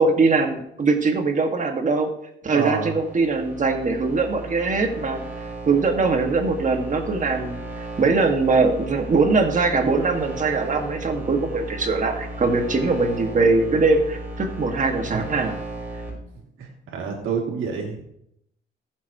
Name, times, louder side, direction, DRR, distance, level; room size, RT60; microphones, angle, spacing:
voice 1, 0.0-2.1 2.4-5.2 5.7-7.6 8.0-15.6, right 3 dB, 40° right, 4 dB, 2.2 m, -21 dB
voice 2, 2.5-3.0 15.1-15.3 16.6-18.1, right 5 dB, 85° right, 0 dB, 2.9 m, -28 dB
sound 1, 2.7-16.1, right 2 dB, 10° right, 5.4 m, -35 dB
19.5 x 7.5 x 3.2 m, 0.77 s
cardioid pair, 90°, 20 cm